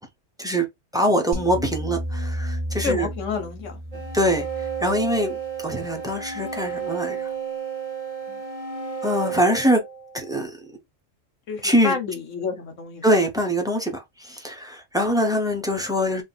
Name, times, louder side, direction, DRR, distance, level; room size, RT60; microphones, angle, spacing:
voice 1, 0.9-3.1 4.1-4.5 4.8-7.3 9.0-9.8 10.1-10.6 11.6-11.9 13.0-16.2, equal, 5° right, 0.8 m, -23 dB
sound 1, 1.3-6.5, equal, 35° left, 1.4 m, -33 dB
voice 2, 2.8-4.0 8.3-8.4 11.5-13.0, left 5 dB, 80° left, 1.4 m, -29 dB
sound 2, 3.9-10.4, right 6 dB, 35° right, 0.6 m, -32 dB
3.7 x 2.4 x 4.0 m
omnidirectional pair, 1.3 m